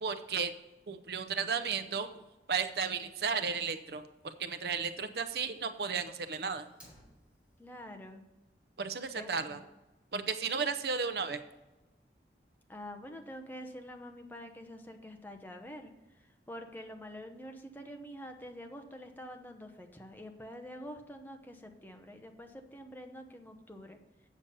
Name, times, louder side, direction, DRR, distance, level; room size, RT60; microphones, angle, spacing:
voice 1, 0.0-0.5 0.9-2.1 2.5-6.7 8.8-9.6 10.1-11.4, right 5 dB, 65° right, 10 dB, 0.6 m, -34 dB
Fire, 6.6-7.6, equal, 10° right, 3.5 m, -58 dB
voice 2, 7.6-8.2 9.2-9.6 12.7-24.0, equal, 10° left, 4 dB, 0.8 m, -47 dB
8.5 x 6.9 x 5.4 m, 1.0 s
head